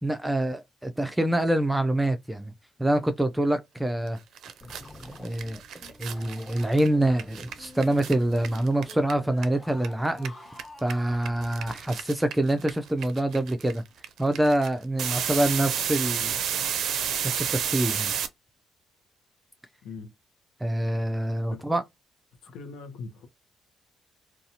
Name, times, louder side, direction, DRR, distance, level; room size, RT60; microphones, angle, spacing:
voice 1, 0.0-2.5 2.8-4.2 5.2-5.6 6.0-10.5 10.8-13.8 14.2-16.4 17.2-18.1 20.6-21.8, right 1 dB, 10° right, 0.4 m, -26 dB
sound 1, 4.1-4.2 4.4-9.9 10.1-18.3, right 8 dB, 75° right, 0.4 m, -31 dB
sound 2, 4.6-11.3, left 2 dB, 20° left, 0.7 m, -47 dB
voice 2, 19.8-20.1 21.5-21.6 22.4-23.3, left 4 dB, 85° left, 0.7 m, -41 dB
2.7 x 2.3 x 2.7 m
cardioid pair, 90°, 0 cm